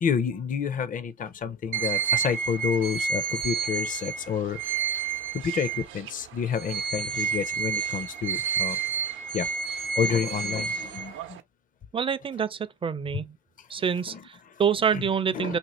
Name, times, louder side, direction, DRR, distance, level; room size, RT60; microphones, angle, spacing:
voice 1, 0.0-4.6 5.3-8.8 9.3-9.5 10.0-11.4 13.1-13.2 14.1-14.6 14.9-15.1 15.3-15.6, left 7 dB, 45° left, 0.5 m, -29 dB
sound 1, 1.7-6.1 6.5-11.4, right 6 dB, 75° right, 0.6 m, -30 dB
voice 2, 11.9-13.4 13.7-14.1 14.6-15.6, right 7 dB, 25° right, 0.4 m, -26 dB
2.8 x 2.6 x 4.1 m
cardioid pair, 90°, 20 cm